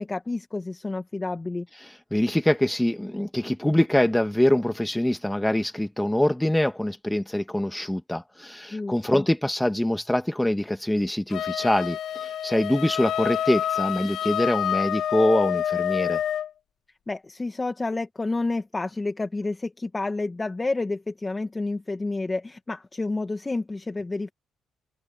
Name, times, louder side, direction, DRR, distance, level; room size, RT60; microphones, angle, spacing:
voice 1, 0.0-1.7 8.7-9.2 17.1-24.3, left 3 dB, 20° left, 2.2 m, -29 dB
voice 2, 1.8-16.2, left 1 dB, 5° left, 2.2 m, -24 dB
Wind instrument woodwind instrument, 11.3-16.5, left 10 dB, 75° left, 3.4 m, -27 dB
open air
cardioid pair, 90°, 0 cm